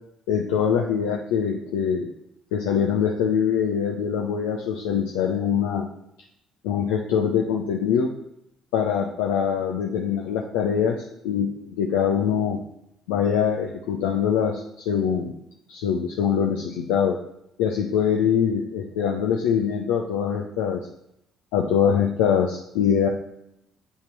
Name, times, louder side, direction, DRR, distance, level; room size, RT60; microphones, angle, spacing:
voice 1, 0.3-2.1 2.5-5.9 6.6-8.1 8.7-11.0 11.2-12.6 13.1-15.3 15.7-17.2 17.6-20.8 21.5-23.1, left 7 dB, 65° left, 0 dB, 0.8 m, -23 dB
7.7 x 5.8 x 6.0 m, 0.78 s
figure-of-eight pair, 45°, 0 cm